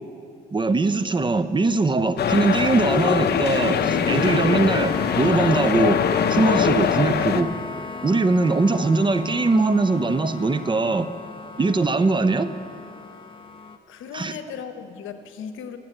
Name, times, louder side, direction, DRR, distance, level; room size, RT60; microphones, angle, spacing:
voice 1, 0.5-7.5 8.0-11.1 11.6-12.5 14.1-14.3, right 3 dB, 25° right, 12 dB, 0.6 m, -21 dB
sound 1, 2.2-7.4, left 8 dB, 55° left, 0.6 m, -22 dB
sound 2, 3.7-13.8, left 3 dB, 25° left, 0.9 m, -35 dB
voice 2, 13.9-15.8, left 7 dB, 80° left, 9 dB, 0.9 m, -36 dB
15.5 x 6.9 x 8.8 m, 2.6 s
cardioid pair, 90°, 20 cm